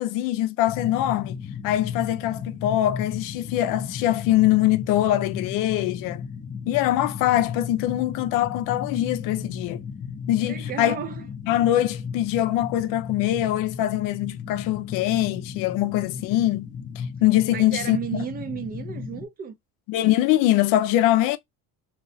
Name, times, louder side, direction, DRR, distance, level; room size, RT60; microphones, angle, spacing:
voice 1, 0.0-1.4 1.6-6.2 6.7-9.8 10.3-11.0 11.5-16.7 17.0-18.3 19.9-21.4, left 14 dB, 75° left, 0.5 m, -23 dB
sound 1, 0.7-19.3, left 6 dB, 25° left, 0.5 m, -35 dB
voice 2, 10.4-11.2 17.5-19.5, right 7 dB, 25° right, 0.4 m, -33 dB
3.0 x 2.8 x 2.6 m
cardioid pair, 170°, 34 cm